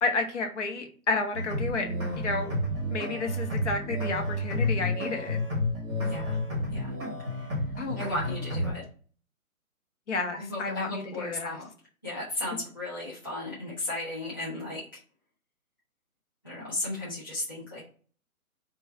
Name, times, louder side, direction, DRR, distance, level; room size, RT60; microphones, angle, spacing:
voice 1, 0.0-1.9 2.2-2.5 2.9-5.4 7.8-8.0 10.1-11.6, left 3 dB, 55° left, 4 dB, 0.9 m, -31 dB
sound 1, 1.3-8.7, left 1 dB, 20° right, 0.8 m, -30 dB
voice 2, 6.0-6.4 6.7-6.9 7.4-7.5 8.0-8.8 10.3-11.6 12.0-14.8 16.4-17.8, left 2 dB, 15° left, -9 dB, 0.4 m, -35 dB
3.2 x 2.2 x 4.2 m, 0.43 s
figure-of-eight pair, 145°, 43 cm